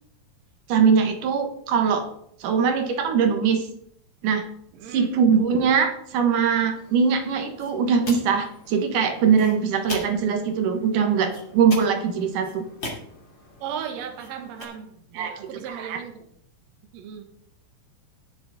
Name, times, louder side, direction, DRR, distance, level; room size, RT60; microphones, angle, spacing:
voice 1, 0.7-2.1 2.4-3.7 4.2-4.5 4.9-12.7 15.1-15.4 15.7-16.0, right 6 dB, 85° right, 6 dB, 2.9 m, -21 dB
voice 2, 4.7-5.1 13.6-16.3 16.9-17.2, right 8 dB, 65° right, 5 dB, 2.4 m, -36 dB
sound 1, 6.5-14.6, left 2 dB, 40° left, 3.3 m, -41 dB
18.5 x 6.8 x 4.1 m, 0.68 s
omnidirectional pair, 3.6 m